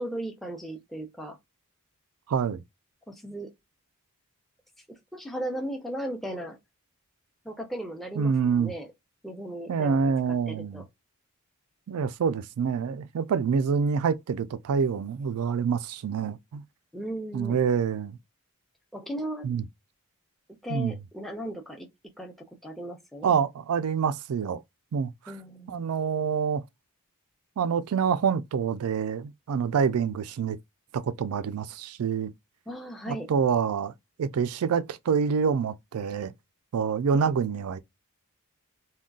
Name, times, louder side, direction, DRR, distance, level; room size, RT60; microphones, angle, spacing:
voice 1, 0.0-1.4 3.1-3.5 5.1-6.6 7.4-8.9 9.2-10.0 10.5-10.8 16.9-17.6 18.9-19.5 20.6-21.9 22.2-23.3 25.3-25.9 32.7-33.3, right 1 dB, ahead, 0.6 m, -36 dB
voice 2, 2.3-2.6 8.2-8.7 9.7-10.8 11.9-16.6 17.3-18.2 19.4-19.6 20.7-21.0 23.2-24.6 24.9-25.3 25.7-26.6 27.6-30.6 30.9-32.3 33.1-33.9 34.2-36.3 36.7-37.8, right 6 dB, 80° right, 0.4 m, -26 dB
3.7 x 2.2 x 2.3 m
head